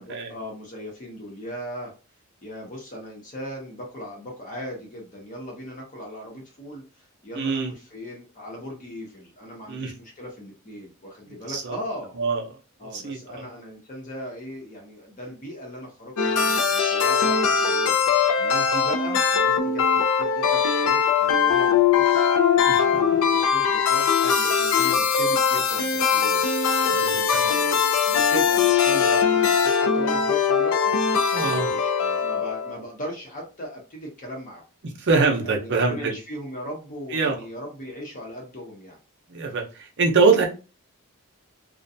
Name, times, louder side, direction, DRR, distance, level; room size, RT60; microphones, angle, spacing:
voice 1, 0.0-1.9 2.4-12.2 12.8-22.3 22.8-26.4 26.9-30.9 31.4-34.6 35.4-39.0, equal, 35° left, 0 dB, 0.7 m, -38 dB
voice 2, 7.3-7.7 9.7-9.9 11.5-11.8 12.2-12.4 12.9-13.4 22.7-22.8 26.9-27.4 31.3-31.7 35.0-36.1 37.1-37.4 39.3-40.5, right 4 dB, 55° right, 2 dB, 0.6 m, -23 dB
sound 1, 16.2-32.8, left 6 dB, 75° left, 0.4 m, -21 dB
2.4 x 2.2 x 2.6 m, 0.33 s
head